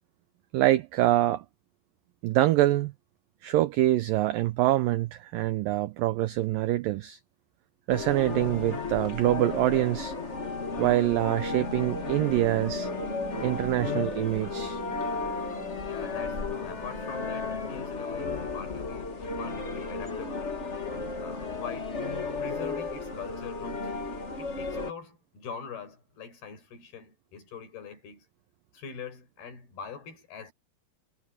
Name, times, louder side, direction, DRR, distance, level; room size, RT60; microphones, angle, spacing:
voice 1, 0.5-1.4 2.2-2.9 3.4-7.2 7.9-10.1 10.8-12.9 13.4-14.8, right 15 dB, 85° right, 1.9 m, -25 dB
sound 1, 7.9-24.9, left 4 dB, 40° left, 0.9 m, -34 dB
sound 2, 11.8-17.4, right 15 dB, 40° right, 4.6 m, -46 dB
voice 2, 15.9-20.5 21.2-22.0 22.4-23.9 24.4-28.3 28.7-30.5, left 6 dB, 65° left, 7.2 m, -43 dB
omnidirectional pair, 4.9 m